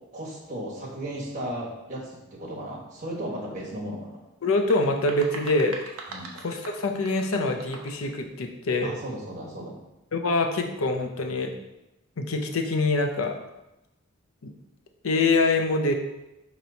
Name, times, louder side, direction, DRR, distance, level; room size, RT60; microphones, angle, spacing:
voice 1, 0.1-4.2 6.1-6.3 8.8-9.8, right 1 dB, 35° right, -5 dB, 1.3 m, -35 dB
voice 2, 4.4-5.8 6.3-8.9 10.1-11.5 12.2-13.3 14.4-14.5 15.0-15.9, left 2 dB, 80° left, 4 dB, 0.6 m, -25 dB
sound 1, 4.4-8.1, right 3 dB, 80° right, 0.7 m, -41 dB
4.5 x 3.0 x 3.9 m, 0.93 s
head